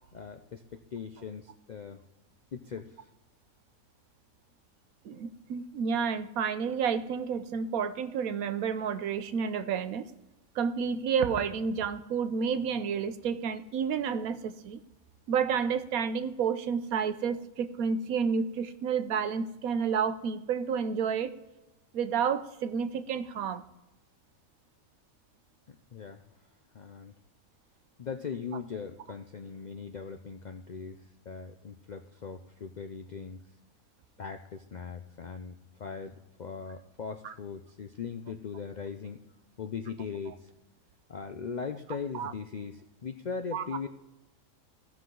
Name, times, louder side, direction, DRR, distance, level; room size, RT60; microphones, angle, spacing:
voice 1, 0.1-2.0 2.5-2.9 25.7-26.2 26.7-27.1 28.0-33.4 34.2-39.2 39.6-40.5 41.1-43.9, left 5 dB, 65° left, 6 dB, 0.4 m, -40 dB
voice 2, 5.0-10.1 10.5-14.8 15.3-21.3 21.9-23.7 37.2-37.3 42.1-42.3 43.5-43.6, right 6 dB, 85° right, 11 dB, 1.2 m, -30 dB
16.5 x 5.8 x 3.8 m, 0.99 s
omnidirectional pair, 1.5 m